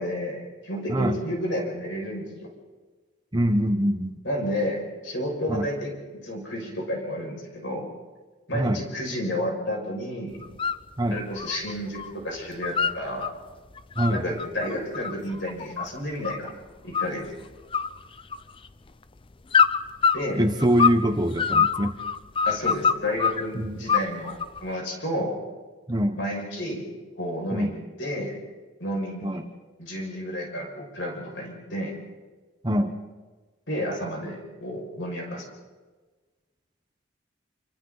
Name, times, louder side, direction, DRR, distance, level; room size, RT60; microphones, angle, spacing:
voice 1, 0.0-2.3 4.2-7.9 8.5-10.4 11.1-13.3 14.1-16.5 16.8-17.2 20.1-20.4 22.5-25.4 26.1-26.9 27.2-28.4 28.8-29.4 29.8-31.9 33.7-35.5, equal, 65° left, 0 dB, 6.3 m, -31 dB
voice 2, 3.3-4.1 5.5-5.7 8.5-8.8 11.0-11.2 14.0-14.2 20.4-22.0 23.6-23.8 25.9-26.2 27.5-27.7 29.2-29.4 32.6-33.0, equal, 20° right, 5 dB, 1.2 m, -24 dB
sound 1, 10.4-10.8 11.2-12.1 12.4-13.3 13.8-16.5 16.9-17.4 17.7-18.7 19.5-21.0 21.4-23.4 23.9-24.6, left 6 dB, 25° left, 0.6 m, -24 dB
28.0 x 24.5 x 4.1 m, 1.3 s
head